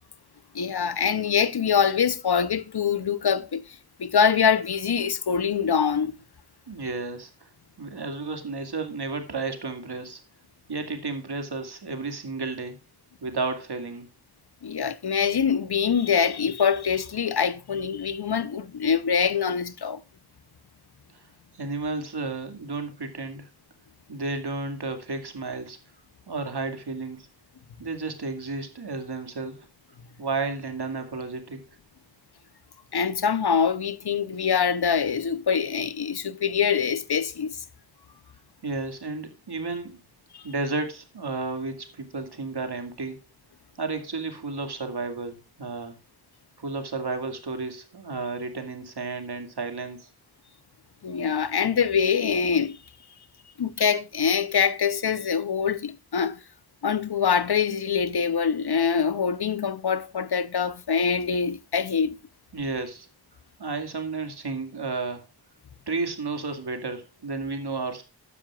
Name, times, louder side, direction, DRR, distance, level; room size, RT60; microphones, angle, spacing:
voice 1, 0.5-6.1 14.6-20.0 32.9-37.6 40.3-40.4 51.0-52.8 53.6-56.4 56.8-62.2, left 6 dB, 75° left, 0.9 m, -24 dB
voice 2, 6.7-7.3 7.8-10.2 10.7-12.8 13.2-14.1 21.5-23.5 24.1-25.8 26.3-27.3 27.8-29.7 30.2-31.6 38.6-40.1 40.4-43.2 43.8-46.0 46.6-50.1 62.5-63.1 63.6-65.2 65.9-68.0, right 3 dB, 85° right, 2.3 m, -32 dB
13.5 x 9.7 x 2.4 m
wide cardioid pair, 55°, 39 cm